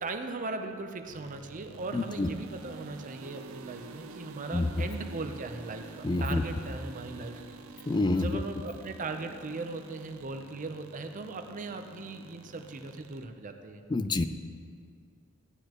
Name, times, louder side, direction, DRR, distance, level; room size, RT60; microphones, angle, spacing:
voice 1, 0.0-7.4 7.7-14.3, right 3 dB, 40° right, 6 dB, 0.6 m, -39 dB
sound 1, 1.0-13.2, right 3 dB, 80° right, 0.6 m, -48 dB
voice 2, 1.9-2.3 4.5-4.7 6.0-6.4 7.9-8.4 13.9-14.3, left 2 dB, 20° left, 11 dB, 0.3 m, -27 dB
15.0 x 9.8 x 3.0 m, 2.2 s
head